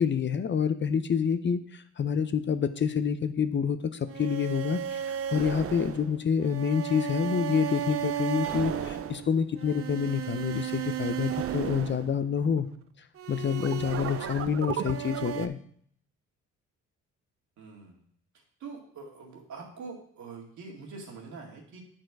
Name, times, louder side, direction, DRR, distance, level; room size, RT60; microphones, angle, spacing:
voice 1, 0.0-12.7 13.3-15.6, left 7 dB, 40° left, 11 dB, 0.6 m, -28 dB
sound 1, 4.1-12.6 13.2-15.5, right 9 dB, 50° right, 0.5 m, -34 dB
voice 2, 17.6-18.0 18.6-21.8, right 4 dB, 70° right, 0 dB, 2.1 m, -44 dB
8.9 x 4.4 x 4.6 m, 0.62 s
cardioid pair, 90°, 30 cm